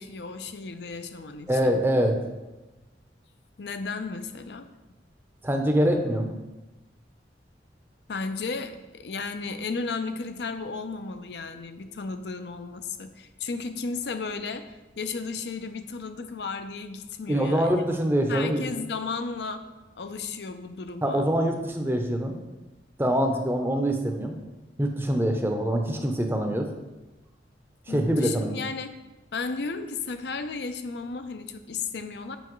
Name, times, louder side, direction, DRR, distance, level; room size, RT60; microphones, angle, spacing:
voice 1, 0.0-1.8 3.6-4.7 8.1-17.8 18.3-19.6 20.0-21.3 27.9-29.0 29.3-32.4, left 4 dB, 65° left, 9 dB, 0.5 m, -34 dB
voice 2, 1.5-2.2 5.4-6.4 17.3-18.6 21.0-22.4 23.0-24.4 24.8-26.7 27.9-28.5, equal, 15° right, 3 dB, 0.6 m, -24 dB
7.9 x 5.5 x 3.1 m, 1.1 s
head